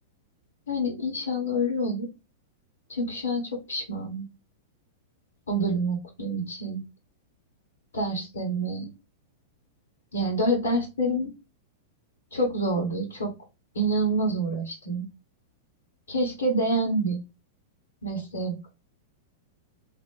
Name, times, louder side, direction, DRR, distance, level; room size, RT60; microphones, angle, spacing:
voice 1, 0.7-2.1 2.9-4.2 5.5-6.8 7.9-8.9 10.1-11.3 12.3-13.3 13.7-15.0 16.1-17.2 18.0-18.7, right 1 dB, 70° left, -1 dB, 1.5 m, -27 dB
2.9 x 2.8 x 3.8 m, 0.26 s
figure-of-eight pair, 100°, 0 cm